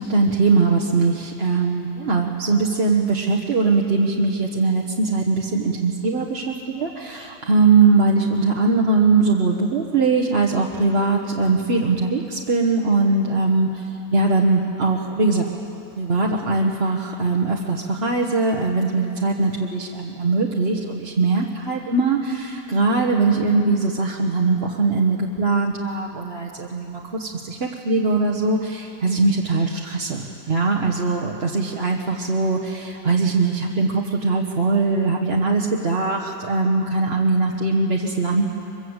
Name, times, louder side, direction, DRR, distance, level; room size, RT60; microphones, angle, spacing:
voice 1, 0.0-13.9 14.1-15.4 16.0-38.4, right 3 dB, 40° right, -1 dB, 1.4 m, -21 dB
24.0 x 23.0 x 8.1 m, 2.8 s
omnidirectional pair, 1.8 m